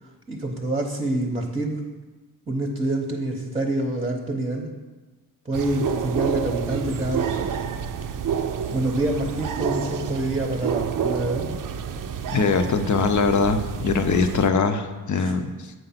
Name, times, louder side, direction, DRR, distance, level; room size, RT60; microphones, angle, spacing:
voice 1, 0.3-1.9 2.5-4.7 5.4-7.5 8.7-11.5 15.2-15.3, right 1 dB, 15° right, 1 dB, 0.9 m, -26 dB
sound 1, 5.5-14.5, right 7 dB, 55° right, 0.6 m, -29 dB
voice 2, 12.3-15.7, left 4 dB, 50° left, 8 dB, 0.8 m, -22 dB
7.9 x 4.6 x 5.8 m, 1.2 s
cardioid pair, 105°, 40 cm